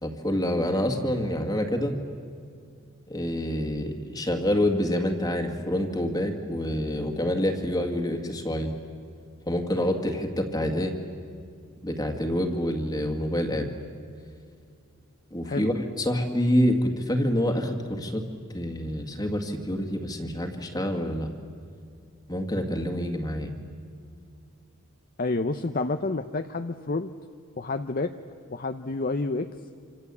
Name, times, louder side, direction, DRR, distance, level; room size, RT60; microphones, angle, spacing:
voice 1, 0.0-2.0 3.1-8.7 9.5-10.9 11.8-13.7 15.3-18.2 18.5-21.3 22.3-23.5, left 1 dB, 20° left, 4 dB, 2.1 m, -27 dB
voice 2, 25.2-27.1 27.6-28.1 28.5-29.5, left 3 dB, 40° left, 7 dB, 0.7 m, -29 dB
27.0 x 26.5 x 8.4 m, 2.3 s
head